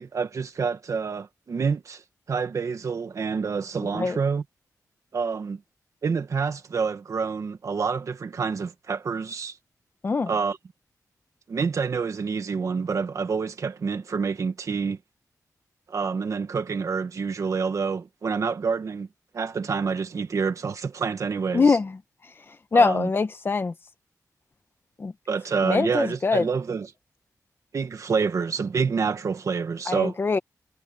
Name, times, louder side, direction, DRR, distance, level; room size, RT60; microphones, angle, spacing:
voice 1, 0.0-2.0 2.3-4.4 5.1-5.6 6.0-9.6 10.3-10.6 11.5-15.0 15.9-19.1 19.3-21.8 22.7-23.1 25.3-26.9 27.7-30.2, right 5 dB, 55° right, 1.7 m, -27 dB
voice 2, 21.5-22.0 22.7-23.7 25.0-25.1 25.6-26.5 29.9-30.4, left 4 dB, 35° left, 1.2 m, -22 dB
wide cardioid pair, 175°, 6 cm